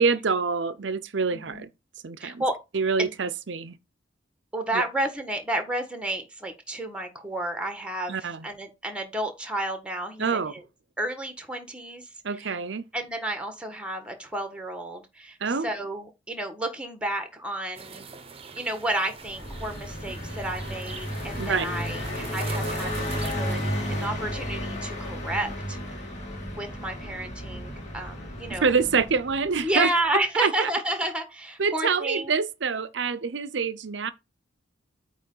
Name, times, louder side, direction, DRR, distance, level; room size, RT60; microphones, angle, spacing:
voice 1, 0.0-1.7 2.0-2.4 2.7-3.8 4.7-4.8 8.1-8.5 10.2-10.5 12.2-12.8 15.4-15.7 21.4-21.7 28.5-29.9 30.4-30.7 31.6-34.1, right 5 dB, 70° right, 0.7 m, -26 dB
voice 2, 1.3-1.6 2.2-2.5 3.0-3.1 4.5-10.6 11.0-12.6 12.9-18.0 18.6-26.1 26.5-28.7 29.6-32.3, right 1 dB, 5° right, 1.4 m, -31 dB
sound 1, 17.7-24.1, right 5 dB, 30° right, 0.9 m, -43 dB
Car passing by, 19.2-29.8, equal, 40° left, 2.5 m, -33 dB
8.7 x 3.2 x 5.4 m
head